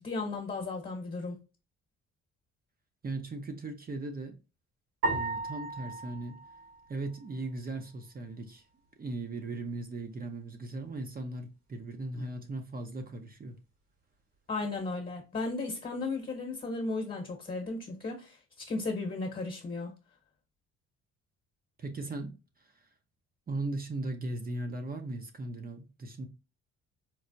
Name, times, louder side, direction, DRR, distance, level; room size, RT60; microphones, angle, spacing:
voice 1, 0.0-1.4 14.5-19.9, left 3 dB, 30° left, 1.0 m, -35 dB
voice 2, 3.0-4.3 5.1-6.4 6.9-8.6 9.0-13.6 21.8-22.7 23.5-26.3, right 2 dB, 30° right, 0.6 m, -38 dB
sound 1, 5.0-7.5, right 2 dB, 75° right, 1.7 m, -35 dB
4.5 x 2.0 x 2.6 m
cardioid pair, 90°, 30 cm